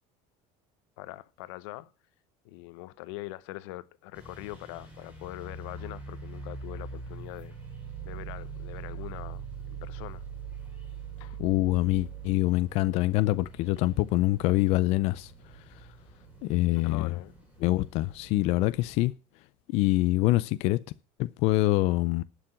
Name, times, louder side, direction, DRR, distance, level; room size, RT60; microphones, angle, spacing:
voice 1, 1.0-1.9 2.4-7.5 8.0-9.5 9.8-10.2 11.1-11.4 16.8-17.3, left 18 dB, 85° left, 0.9 m, -42 dB
sound 1, 4.1-19.1, right 5 dB, 10° right, 4.5 m, -43 dB
voice 2, 11.4-15.3 16.4-17.1 17.6-19.1 19.7-20.8 21.2-22.2, left 17 dB, 50° left, 0.5 m, -25 dB
11.5 x 6.9 x 7.5 m
cardioid pair, 170°, 14 cm